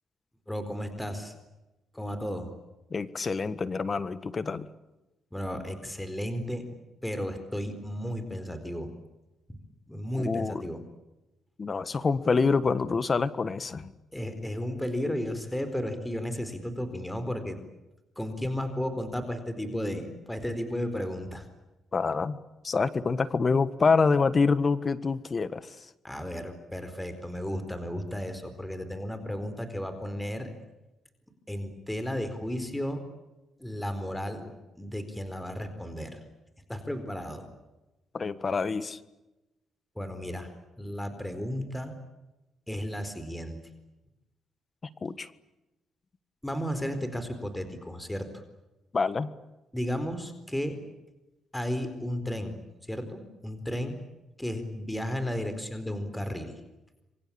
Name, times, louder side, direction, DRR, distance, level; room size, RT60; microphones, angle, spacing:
voice 1, 0.5-1.3 1.9-2.5 5.3-6.6 7.0-8.9 9.5-9.6 9.9-10.8 14.1-17.6 18.2-21.5 26.0-30.5 31.5-33.0 33.6-36.2 36.7-37.5 40.0-40.5 40.8-41.9 42.7-43.6 46.4-48.3 49.7-50.8 51.5-52.6 52.9-54.0 54.4-56.6, equal, 5° left, 9 dB, 4.2 m, -34 dB
voice 2, 2.9-4.7 10.3-10.7 11.6-13.9 21.9-22.4 22.6-25.7 38.1-39.0 45.0-45.3 48.9-49.3, left 4 dB, 35° left, 15 dB, 1.5 m, -26 dB
28.0 x 24.0 x 8.7 m, 1.0 s
cardioid pair, 90°, 0 cm